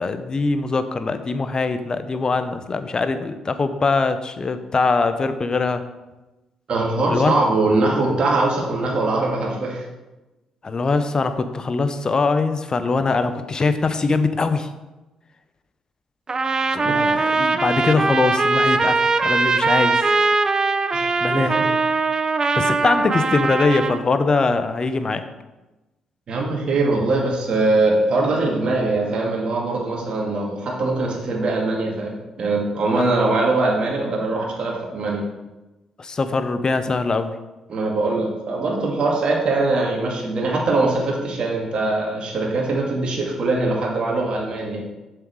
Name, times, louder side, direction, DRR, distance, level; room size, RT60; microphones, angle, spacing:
voice 1, 0.0-5.8 7.1-7.3 10.6-14.7 16.7-20.0 21.2-21.6 22.5-25.2 33.0-33.1 36.0-37.3, left 3 dB, 35° left, 10 dB, 0.9 m, -22 dB
voice 2, 6.7-9.8 16.8-17.0 20.9-21.1 21.3-21.7 26.3-35.2 37.7-44.8, right 2 dB, 50° right, -2 dB, 2.2 m, -22 dB
Trumpet, 16.3-24.0, right 3 dB, 35° right, 0.6 m, -20 dB
7.2 x 6.8 x 4.9 m, 1.1 s
hypercardioid pair, 45°, 2 cm